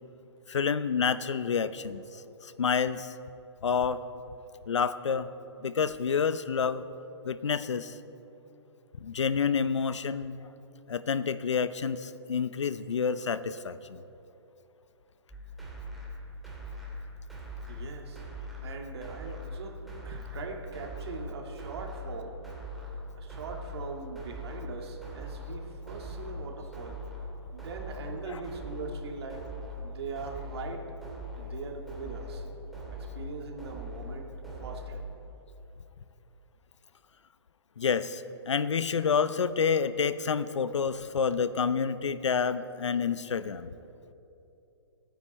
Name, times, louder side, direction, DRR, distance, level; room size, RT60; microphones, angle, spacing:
voice 1, 0.5-3.1 3.6-4.0 4.7-5.3 5.6-6.8 7.2-8.0 9.0-10.4 10.9-14.0 28.3-28.4 37.8-43.7, left 6 dB, 85° left, 14 dB, 0.7 m, -29 dB
sound 1, 15.3-35.0, equal, ahead, 2.5 m, -41 dB
voice 2, 17.7-18.2 18.6-22.4 23.2-27.0 27.5-29.4 29.8-30.9 31.4-32.5 32.9-34.3 34.6-35.0, right 4 dB, 60° right, 1 dB, 2.4 m, -41 dB
26.5 x 9.5 x 4.4 m, 2.9 s
hypercardioid pair, 140°, 15 cm